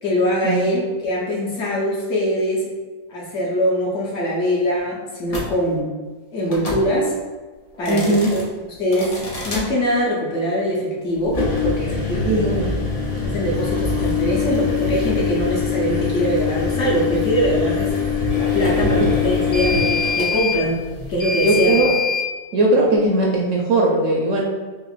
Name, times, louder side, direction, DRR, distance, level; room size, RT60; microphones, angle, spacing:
voice 1, 0.0-2.6 3.1-5.9 6.3-7.1 7.8-8.4 8.8-12.5 13.2-17.9 18.3-20.8 21.1-21.8, equal, 60° left, -5 dB, 1.0 m, -22 dB
sound 1, 5.3-5.5 6.5-6.8 7.7-8.4 8.9-9.6 11.2-22.3, left 5 dB, 75° left, 0.3 m, -23 dB
voice 2, 7.9-8.3 12.2-12.8 18.8-18.9 21.4-21.9 22.5-24.4, right 2 dB, 70° right, -1 dB, 0.8 m, -18 dB
5.0 x 2.0 x 2.4 m, 1.3 s
omnidirectional pair, 1.6 m